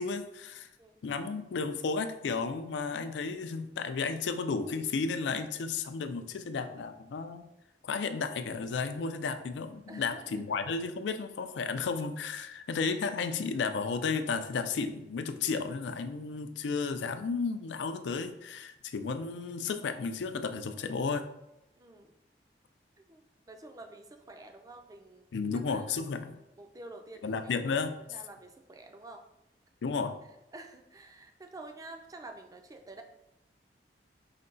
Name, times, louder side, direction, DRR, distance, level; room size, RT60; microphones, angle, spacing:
voice 1, 0.0-0.7 1.0-7.4 7.8-21.3 25.3-26.3 27.2-27.9 29.8-30.1, left 4 dB, 85° left, 9 dB, 0.4 m, -33 dB
voice 2, 9.9-10.4 21.8-22.1 23.0-23.2 23.5-25.2 25.7-26.1 26.6-27.5 28.1-29.2 30.5-33.0, right 2 dB, 20° right, 5 dB, 0.4 m, -49 dB
5.1 x 2.2 x 3.7 m, 0.89 s
head